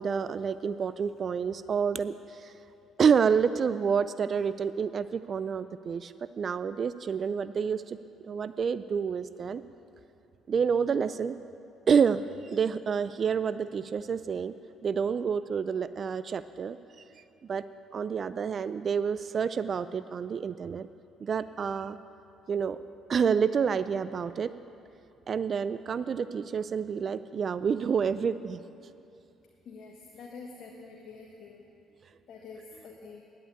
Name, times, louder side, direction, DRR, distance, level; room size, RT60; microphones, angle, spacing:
voice 1, 0.0-2.1 2.4-2.5 3.0-8.0 8.2-9.6 10.5-11.4 11.9-14.5 14.8-16.8 17.5-17.6 17.9-20.9 21.2-22.0 22.5-22.8 23.1-24.5 25.3-28.6, right 6 dB, 50° right, 14 dB, 0.4 m, -28 dB
voice 2, 29.7-31.6 32.3-33.2, left 4 dB, 60° left, 0 dB, 1.3 m, -46 dB
11.0 x 8.5 x 8.6 m, 2.7 s
supercardioid pair, 70°, 0 cm